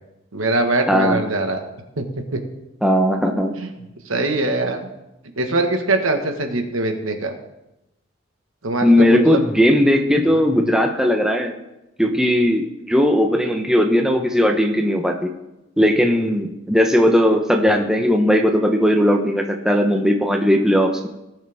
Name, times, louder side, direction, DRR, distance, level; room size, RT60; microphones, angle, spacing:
voice 1, 0.3-1.6 2.0-2.1 2.3-2.4 3.6-3.7 4.0-4.8 5.4-7.3 8.6-9.4 10.3-10.4, right 2 dB, 85° right, 5 dB, 1.5 m, -22 dB
voice 2, 0.9-1.3 2.8-3.5 8.8-11.5 12.0-15.3 15.8-21.1, equal, 5° right, 3 dB, 0.7 m, -17 dB
18.5 x 6.5 x 3.5 m, 0.92 s
head